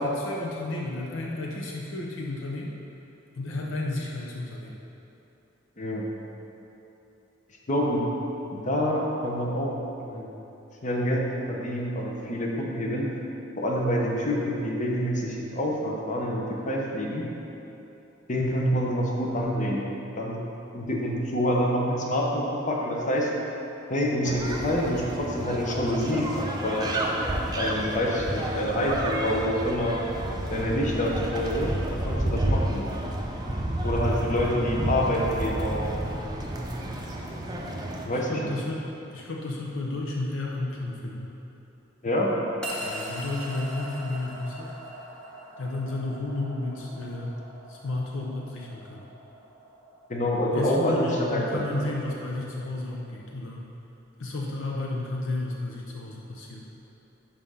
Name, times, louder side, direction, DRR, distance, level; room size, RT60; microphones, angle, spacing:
voice 1, 0.0-2.7 3.3-4.8 38.1-41.4 42.8-44.7 45.6-47.4 47.7-49.1 50.5-53.7 54.2-56.7, left 2 dB, 70° left, -2 dB, 0.7 m, -32 dB
voice 2, 5.8-6.1 7.7-8.0 8.5-10.3 10.8-13.1 13.6-17.2 18.3-19.8 20.2-20.4 20.7-23.3 23.9-26.4 26.6-27.0 27.6-30.0 30.5-32.8 33.8-35.8 38.1-38.5 42.0-42.3 50.1-51.8, equal, 40° left, -2 dB, 0.9 m, -27 dB
sound 1, 24.2-38.0, right 1 dB, 20° right, 0.6 m, -30 dB
sound 2, 42.6-53.0, equal, 5° left, 1.0 m, -42 dB
5.7 x 5.0 x 5.6 m, 3.0 s
head